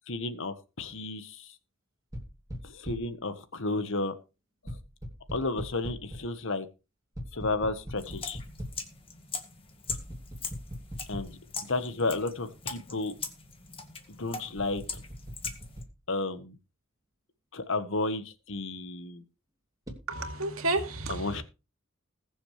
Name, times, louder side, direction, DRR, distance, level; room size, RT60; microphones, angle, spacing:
voice 1, 0.1-1.5 2.6-4.1 5.3-6.7 7.3-8.4 11.1-13.1 14.2-15.0 16.1-16.6 17.5-19.2 21.1-21.4, left 2 dB, 65° left, 1.4 m, -32 dB
sound 1, 2.1-3.2 4.7-6.4 7.1-8.9 9.9-11.5 12.1-12.2 14.6-15.9 19.9-20.1, equal, 15° right, 2.9 m, -41 dB
sound 2, 8.0-15.8, left 5 dB, 25° left, 2.0 m, -41 dB
voice 2, 20.1-21.4, right 2 dB, 85° right, 2.3 m, -31 dB
21.0 x 7.1 x 3.3 m
head